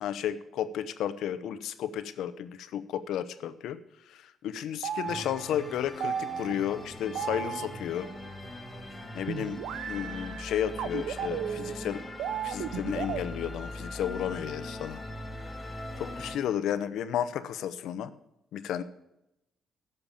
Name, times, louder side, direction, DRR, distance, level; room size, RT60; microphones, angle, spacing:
voice 1, 0.0-3.8 4.1-8.1 9.1-9.6 9.9-12.0 12.4-15.0 16.0-18.1 18.5-18.8, left 10 dB, 80° left, 12 dB, 0.9 m, -33 dB
sound 1, 4.8-8.3 9.3-13.2, right 8 dB, 85° right, 0.7 m, -35 dB
sound 2, 5.1-16.4, left 1 dB, 20° left, 2.5 m, -41 dB
11.5 x 6.8 x 8.8 m, 0.84 s
cardioid pair, 90°, 0 cm